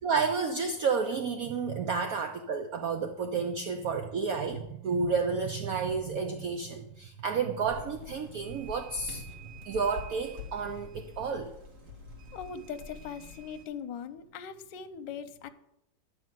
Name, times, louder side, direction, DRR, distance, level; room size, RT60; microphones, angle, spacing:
voice 1, 0.0-9.2 9.7-11.5, right 5 dB, 70° right, 5 dB, 0.8 m, -31 dB
sound 1, 7.7-13.6, left 2 dB, 40° right, 1.9 m, -46 dB
voice 2, 12.3-15.5, left 7 dB, 65° left, 10 dB, 1.2 m, -40 dB
11.0 x 4.9 x 7.5 m, 0.81 s
omnidirectional pair, 2.3 m